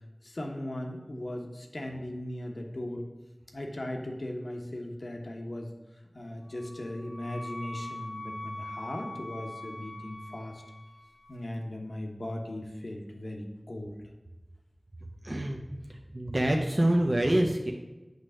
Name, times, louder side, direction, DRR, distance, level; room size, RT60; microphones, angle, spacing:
voice 1, 0.2-3.1 3.5-5.7 6.1-10.6 11.3-14.0, left 1 dB, 75° left, 2 dB, 1.0 m, -38 dB
Wind instrument woodwind instrument, 6.5-11.3, left 2 dB, 20° left, 0.6 m, -43 dB
voice 2, 15.2-15.6 15.9-17.7, right 1 dB, 45° right, 2 dB, 0.6 m, -26 dB
8.1 x 3.2 x 6.2 m, 1.1 s
wide cardioid pair, 45°, 0 cm